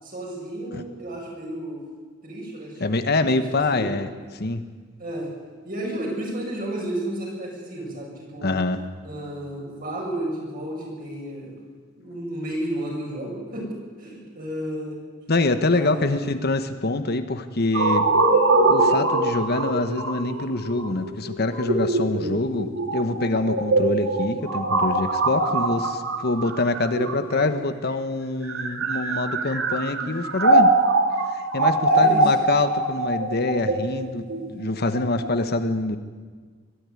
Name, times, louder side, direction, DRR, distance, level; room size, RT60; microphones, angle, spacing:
voice 1, 0.0-1.9 2.2-2.9 3.5-3.9 5.0-5.3 5.6-8.6 9.0-11.5 11.9-13.7 14.0-15.0 15.6-16.2 31.8-32.3, right 1 dB, 50° right, -2 dB, 7.9 m, -32 dB
voice 2, 2.8-4.1 4.3-4.6 8.4-8.8 15.3-18.1 18.7-30.7 31.3-34.2 34.5-36.0, left 2 dB, 55° left, 9 dB, 1.1 m, -25 dB
sound 1, 17.7-27.6 28.3-35.3, right 2 dB, 80° right, 2.5 m, -22 dB
22.5 x 13.0 x 9.8 m, 1.5 s
head